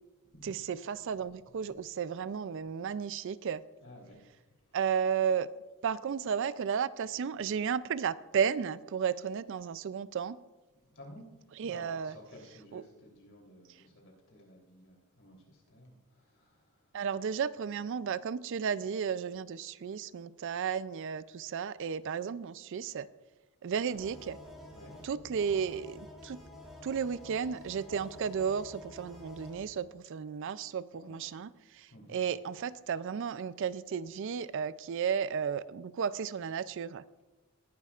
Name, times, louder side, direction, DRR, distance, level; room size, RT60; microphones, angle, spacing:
voice 1, 0.4-3.6 4.7-5.5 5.8-10.4 11.6-12.1 12.7-12.8 16.9-23.1 23.6-24.4 25.0-26.4 26.8-37.0, right 7 dB, 55° right, 17 dB, 0.4 m, -33 dB
voice 2, 3.8-4.2 4.7-4.8 10.9-11.3 11.6-16.9 23.8-23.9 24.7-25.0 30.9-31.4 31.9-32.2, left 1 dB, 55° left, -1 dB, 3.3 m, -53 dB
sound 1, 23.9-29.6, left 1 dB, ahead, 3.7 m, -50 dB
20.0 x 11.0 x 2.4 m, 1.1 s
head